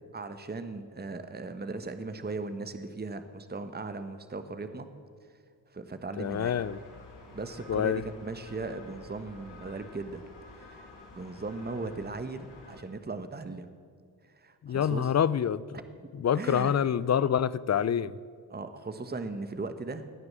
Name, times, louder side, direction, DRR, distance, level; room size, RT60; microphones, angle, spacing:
voice 1, 0.1-4.9 5.7-6.5 7.3-10.2 10.5-13.7 14.2-15.1 16.0-16.1 16.3-16.9 18.5-20.0, right 3 dB, 20° right, 10 dB, 1.3 m, -38 dB
sound 1, 6.2-12.8, left 3 dB, 55° left, 5.1 m, -50 dB
voice 2, 6.2-6.8 7.7-8.0 14.6-15.8 16.2-18.1, left 8 dB, 35° left, 19 dB, 0.6 m, -26 dB
19.0 x 9.6 x 7.5 m, 2.2 s
hypercardioid pair, 45°, 50 cm